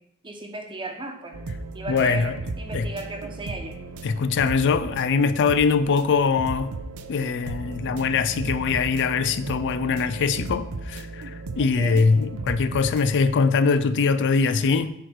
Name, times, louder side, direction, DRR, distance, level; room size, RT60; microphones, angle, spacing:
voice 1, 0.2-1.4 1.7-3.8 11.6-12.1, right 2 dB, 25° right, 1.1 m, -35 dB
sound 1, 1.3-13.3, right 3 dB, 90° right, 0.6 m, -36 dB
voice 2, 1.9-2.4 2.7-2.9 4.0-6.7 7.1-14.9, left 5 dB, 55° left, 0.4 m, -22 dB
10.0 x 4.7 x 4.6 m
head